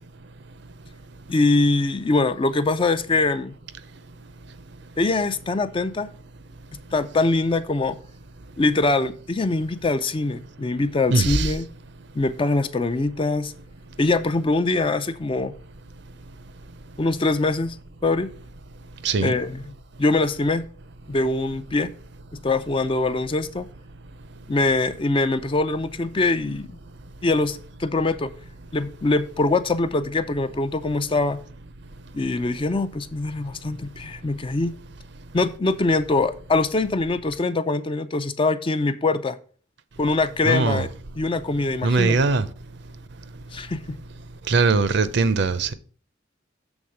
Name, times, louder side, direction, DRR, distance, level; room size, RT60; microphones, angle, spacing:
voice 1, 1.3-3.5 5.0-6.1 6.9-8.0 8.6-11.6 12.1-13.5 14.0-15.5 17.0-17.8 18.0-18.3 19.2-19.6 20.0-20.6 21.1-21.9 22.4-23.7 24.5-26.8 27.2-28.3 28.7-31.4 32.1-34.7 35.3-39.4 40.0-40.9 41.2-42.2 43.5-43.8, left 3 dB, 25° left, 0.4 m, -23 dB
voice 2, 11.1-11.5 19.0-19.3 40.4-40.8 41.8-42.4 44.5-45.7, right 3 dB, 60° right, 0.6 m, -20 dB
7.2 x 3.6 x 6.3 m
head